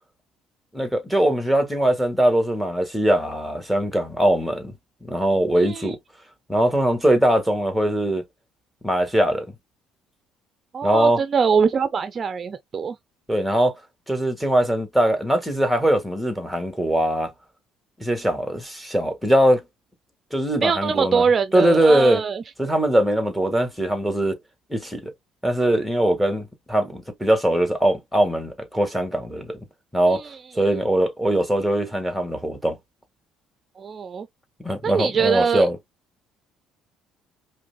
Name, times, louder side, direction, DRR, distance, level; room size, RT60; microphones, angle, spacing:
voice 1, 0.7-4.7 5.1-6.0 6.5-8.2 8.8-9.5 10.8-11.2 13.3-13.7 14.1-17.3 18.0-19.6 20.3-21.2 21.5-22.2 22.6-24.4 24.7-25.1 25.4-29.5 29.9-30.2 30.6-32.8 34.6-35.8, right 1 dB, ahead, 1.6 m, -21 dB
voice 2, 5.6-5.9 10.7-13.0 20.6-22.4 30.1-30.4 33.8-34.3 34.8-35.7, right 6 dB, 35° right, 0.5 m, -23 dB
5.0 x 3.1 x 2.2 m
cardioid pair, 110°, 0 cm